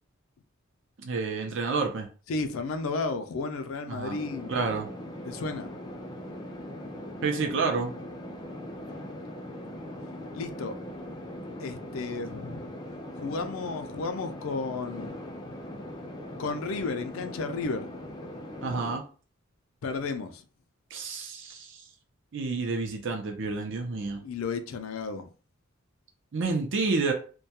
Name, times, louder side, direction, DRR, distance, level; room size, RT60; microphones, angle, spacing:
voice 1, 1.0-2.1 3.9-4.2 4.5-4.9 7.2-7.9 18.6-19.0 20.9-21.8 22.3-24.2 26.3-27.1, right 4 dB, 65° right, 0.5 m, -29 dB
voice 2, 2.3-4.5 5.3-5.7 10.3-10.7 11.6-12.7 13.2-15.1 16.4-17.9 19.8-20.4 24.2-25.3, left 4 dB, 85° left, 0.4 m, -33 dB
sound 1, 4.1-19.0, left 1 dB, 20° left, 0.4 m, -40 dB
2.2 x 2.2 x 2.8 m
head